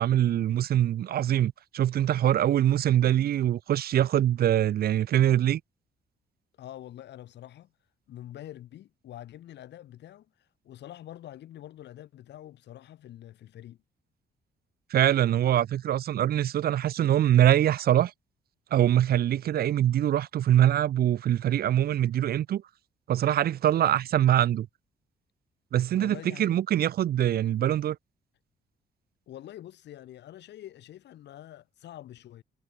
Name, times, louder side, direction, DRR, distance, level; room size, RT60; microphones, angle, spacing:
voice 1, 0.0-5.6 14.9-18.1 18.7-22.6 23.1-24.7 25.7-28.0, right 11 dB, 60° right, 0.8 m, -23 dB
voice 2, 6.6-7.7 8.1-13.8 25.9-26.6 29.3-32.4, left 12 dB, 80° left, 6.9 m, -45 dB
cardioid pair, 130°, 18 cm